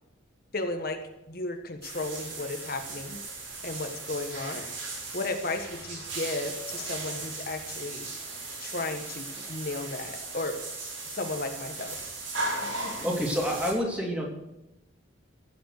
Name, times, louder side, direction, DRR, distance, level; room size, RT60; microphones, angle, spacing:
voice 1, 0.5-1.0 1.3-3.2 3.6-4.6 4.9-8.1 8.6-10.6 11.1-12.0 12.8-12.9, left 2 dB, 50° left, 5 dB, 1.4 m, -34 dB
sound 1, 1.8-13.7, right 3 dB, 85° right, 7.2 m, -37 dB
voice 2, 12.7-14.2, equal, 5° right, -1 dB, 3.4 m, -29 dB
15.5 x 9.2 x 6.6 m, 0.93 s
head